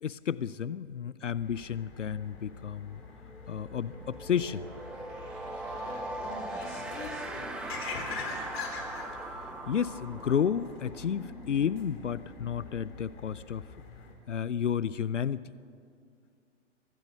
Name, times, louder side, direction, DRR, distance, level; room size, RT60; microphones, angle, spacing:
voice 1, 0.0-3.0 3.5-4.7 9.7-13.7 14.3-15.5, left 8 dB, 80° left, 18 dB, 0.7 m, -31 dB
sound 1, 1.4-14.1, left 5 dB, 55° left, 3.9 m, -45 dB
sound 2, 2.5-2.7 3.0-13.6, right 2 dB, 5° right, 0.5 m, -41 dB
sound 3, 3.9-10.0, right 1 dB, 90° right, 4.6 m, -56 dB
voice 2, 5.7-8.6, left 3 dB, 25° left, -1 dB, 3.5 m, -47 dB
24.0 x 16.0 x 6.8 m, 2.2 s
figure-of-eight pair, 120°, 37 cm